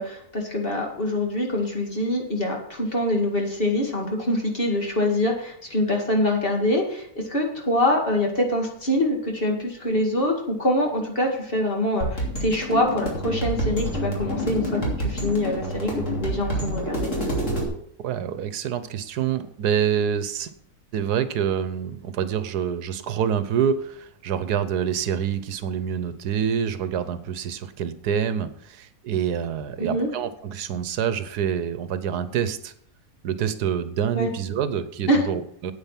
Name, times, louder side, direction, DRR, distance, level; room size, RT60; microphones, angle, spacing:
voice 1, 0.0-17.1 29.8-30.1 34.1-34.3 35.1-35.2, left 1 dB, 35° left, 1 dB, 2.3 m, -24 dB
sound 1, 12.0-17.6, right 1 dB, 50° left, 3.3 m, -28 dB
voice 2, 18.0-20.5 20.9-32.7 33.2-35.7, right 8 dB, 85° right, 12 dB, 1.4 m, -26 dB
9.0 x 8.7 x 5.9 m, 0.67 s
omnidirectional pair, 1.6 m